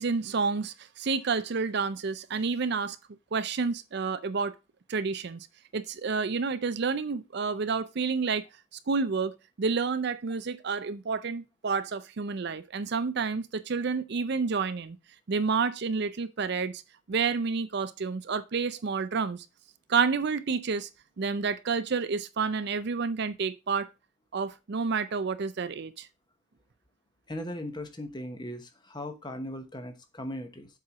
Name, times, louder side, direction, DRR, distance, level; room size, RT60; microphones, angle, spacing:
voice 1, 0.0-3.0 3.3-4.5 4.9-5.5 5.7-8.4 8.9-15.0 15.3-16.8 17.1-19.5 19.9-20.9 21.2-23.9 24.3-26.1, right 5 dB, 50° right, 0.5 m, -29 dB
voice 2, 27.3-30.7, left 1 dB, 20° left, 1.0 m, -38 dB
7.5 x 4.5 x 4.9 m
head